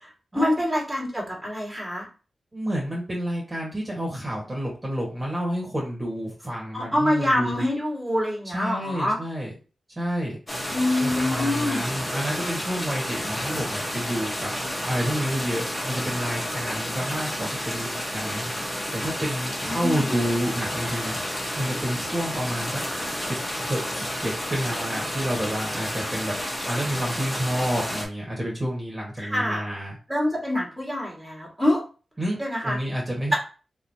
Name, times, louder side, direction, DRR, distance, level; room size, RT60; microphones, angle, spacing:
voice 1, 0.0-2.1 6.7-9.2 10.7-11.8 19.7-20.2 29.2-29.7 30.1-31.8 32.4-32.8, left 1 dB, 5° right, -3 dB, 1.9 m, -26 dB
voice 2, 2.5-7.6 8.5-9.5 9.9-10.4 10.9-14.5 14.8-21.2 21.5-22.8 23.1-26.3 26.6-30.0 32.2-33.4, equal, 25° right, -4 dB, 1.6 m, -29 dB
sound 1, 10.5-28.0, equal, 20° left, 1.3 m, -31 dB
4.0 x 3.1 x 2.8 m, 0.34 s
wide cardioid pair, 90°, 0 cm